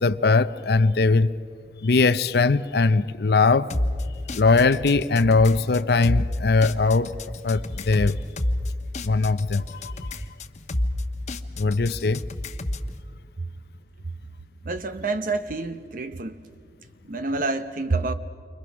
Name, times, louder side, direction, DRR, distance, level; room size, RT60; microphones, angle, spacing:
voice 1, 0.0-1.3 1.8-3.7 4.3-7.1 7.4-8.2 9.0-9.9 11.6-12.2, left 3 dB, 60° left, 0.6 m, -20 dB
sound 1, 3.7-12.9, left 1 dB, 40° left, 1.1 m, -30 dB
voice 2, 14.6-16.4 17.0-18.1, right 3 dB, 50° right, 0.8 m, -28 dB
29.5 x 25.0 x 6.2 m
head